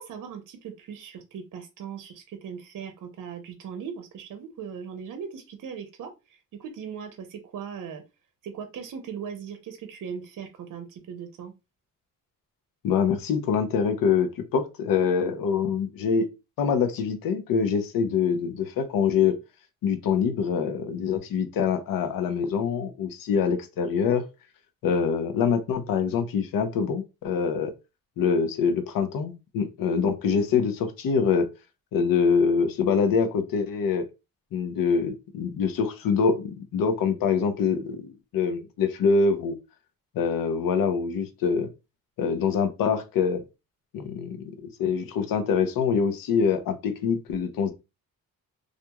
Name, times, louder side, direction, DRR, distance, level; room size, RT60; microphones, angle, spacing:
voice 1, 0.0-8.0 8.4-11.5, right 7 dB, 65° right, 0.6 m, -39 dB
voice 2, 12.8-16.3 16.6-19.4 19.8-24.2 24.8-27.7 28.2-31.5 31.9-34.1 34.5-39.6 40.1-41.7 42.2-43.4 43.9-47.7, left 6 dB, 80° left, 0.6 m, -25 dB
2.8 x 2.5 x 2.2 m
cardioid pair, 120°, 34 cm